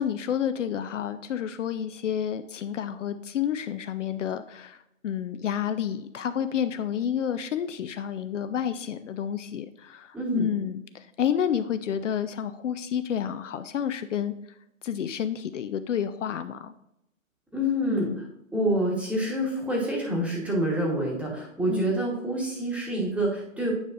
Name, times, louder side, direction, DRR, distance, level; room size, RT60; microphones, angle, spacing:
voice 1, 0.0-14.3 14.8-16.7 17.9-18.2 21.7-22.0, left 9 dB, 65° left, 11 dB, 0.6 m, -30 dB
voice 2, 10.1-10.5 17.5-18.1 18.5-23.7, right 1 dB, 5° right, -3 dB, 1.1 m, -27 dB
9.3 x 5.2 x 2.5 m, 0.80 s
hypercardioid pair, 140°, 40 cm